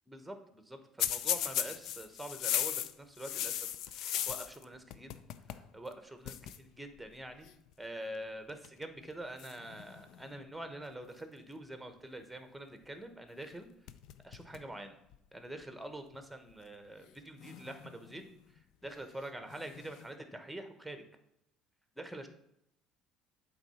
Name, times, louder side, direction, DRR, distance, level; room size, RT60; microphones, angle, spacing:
voice 1, 0.1-3.7 3.9-5.1 5.5-7.5 7.8-13.7 14.2-15.0 15.3-18.2 18.8-21.0 22.0-22.3, right 1 dB, 5° right, 7 dB, 1.1 m, -45 dB
sound 1, 1.0-4.6 4.9-5.7 5.9-6.0 6.2-6.6 7.4-7.7 8.5-8.8 9.4-10.4 13.4-13.5 13.9-14.7 15.1-15.2 16.1-16.2 17.4-18.3 19.5-20.1, left 11 dB, 70° left, 0.4 m, -37 dB
8.0 x 3.8 x 5.7 m, 0.78 s
supercardioid pair, 95°, 0 cm